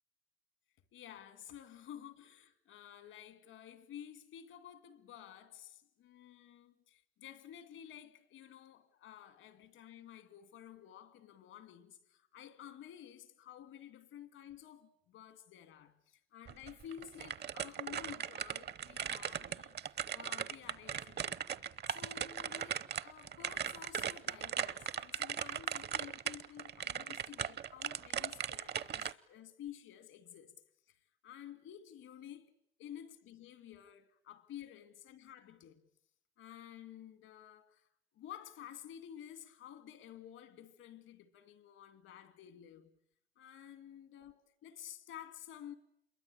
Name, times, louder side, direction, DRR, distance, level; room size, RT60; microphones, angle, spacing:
voice 1, 0.9-21.4 21.9-30.6 30.9-31.0 31.2-32.5 32.8-35.9 36.4-37.9 38.1-42.9 43.4-45.7, left 10 dB, 85° left, 2.5 m, -52 dB
sound 1, 16.5-29.1, right 8 dB, 55° right, 1.0 m, -38 dB
27.5 x 22.5 x 8.7 m
cardioid pair, 90°, 20 cm